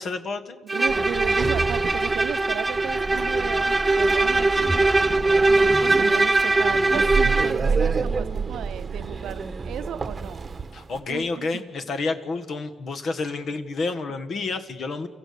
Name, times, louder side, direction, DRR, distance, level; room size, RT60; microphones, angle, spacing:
voice 1, 0.0-0.6 10.7-15.1, left 3 dB, 55° left, 9 dB, 1.6 m, -29 dB
Bowed string instrument, 0.7-7.6, right 2 dB, 15° right, 0.7 m, -21 dB
voice 2, 0.7-4.8 5.5-10.5 11.1-11.6, right 10 dB, 75° right, 13 dB, 0.7 m, -35 dB
Sliding door, 0.9-11.0, right 5 dB, 35° right, 1.1 m, -30 dB
29.5 x 15.0 x 6.9 m, 1.5 s
cardioid pair, 90°, 0 cm